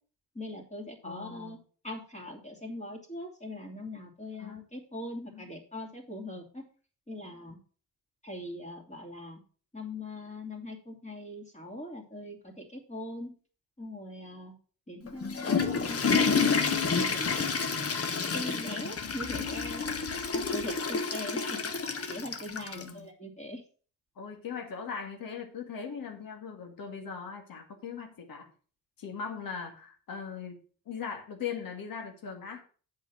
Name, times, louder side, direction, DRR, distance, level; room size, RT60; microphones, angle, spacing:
voice 1, 0.3-1.6 1.8-6.7 7.1-7.6 8.2-9.4 9.7-13.3 13.8-14.5 14.9-17.5 18.2-19.8 20.3-21.7 22.1-23.6, left 1 dB, 20° left, 0 dB, 2.7 m, -41 dB
voice 2, 1.0-1.6 4.4-4.6 5.3-5.5 22.7-23.1 24.2-28.5 29.0-30.6 30.9-32.6, left 6 dB, 65° left, 4 dB, 1.9 m, -40 dB
Water / Toilet flush, 15.1-22.9, left 5 dB, 40° left, 1.3 m, -29 dB
8.0 x 5.7 x 6.0 m, 0.41 s
cardioid pair, 90°, 37 cm